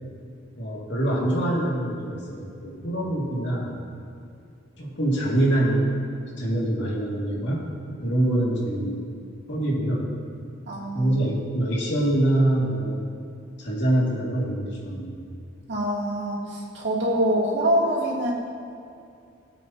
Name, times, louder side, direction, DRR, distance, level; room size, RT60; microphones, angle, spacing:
voice 1, 0.6-3.7 4.8-5.9 6.4-9.1 9.5-10.1 10.9-13.0 13.6-15.2, right 1 dB, 65° left, -4 dB, 2.4 m, -25 dB
voice 2, 10.7-11.1 15.7-18.3, right 1 dB, 65° right, -7 dB, 2.9 m, -25 dB
17.0 x 8.5 x 2.9 m, 2.5 s
head